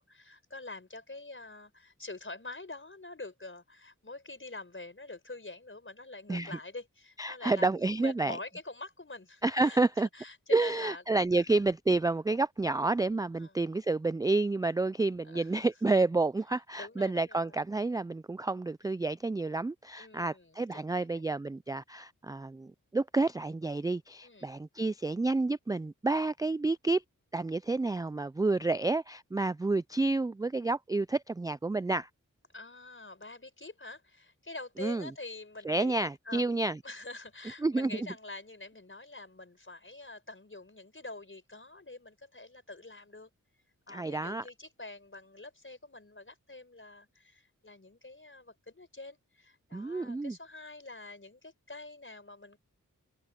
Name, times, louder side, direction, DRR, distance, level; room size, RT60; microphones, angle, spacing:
voice 1, 0.0-11.0 11.3-11.6 13.4-13.5 15.2-15.5 16.8-17.6 20.0-21.2 24.2-24.5 32.5-43.3 43.9-52.6, left 2 dB, 35° left, 4.8 m, -46 dB
voice 2, 7.2-8.4 9.4-10.1 10.5-27.0 27.3-32.1 34.8-35.1 35.6-36.8 37.6-37.9 43.9-44.4 49.7-50.4, right 3 dB, 10° right, 0.3 m, -29 dB
cardioid pair, 50°, 33 cm